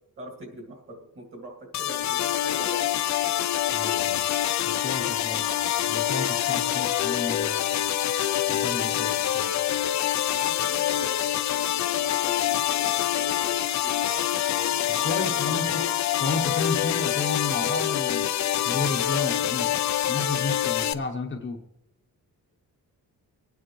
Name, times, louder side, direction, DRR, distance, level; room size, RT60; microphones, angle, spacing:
voice 1, 0.2-3.0 10.3-15.6, right 1 dB, 35° right, 2 dB, 2.3 m, -42 dB
sound 1, 1.7-20.9, left 12 dB, 55° left, 0.5 m, -26 dB
voice 2, 3.7-4.2 4.6-5.5 5.9-7.8 8.5-9.5 15.0-15.9 16.2-18.3 18.6-21.6, left 3 dB, 35° left, 3 dB, 0.9 m, -32 dB
27.0 x 9.3 x 3.1 m, 0.94 s
wide cardioid pair, 165°, 34 cm